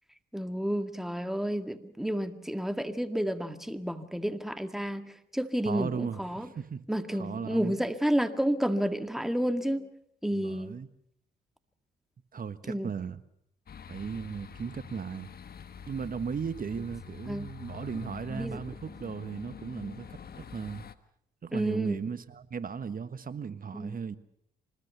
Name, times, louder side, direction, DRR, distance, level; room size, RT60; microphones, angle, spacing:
voice 1, 0.3-6.5 6.9-9.9 10.2-10.7 12.7-12.9 17.3-17.5 18.0-18.6 21.5-22.0 23.7-24.0, equal, ahead, 2.0 m, -31 dB
voice 2, 5.6-6.8 7.1-7.8 10.3-10.9 12.3-13.2 13.9-15.3 15.9-20.8 21.4-24.2, right 6 dB, 45° right, 1.5 m, -36 dB
sound 1, 13.7-20.9, left 7 dB, 50° left, 1.4 m, -46 dB
25.5 x 20.0 x 6.9 m
supercardioid pair, 50°, 20 cm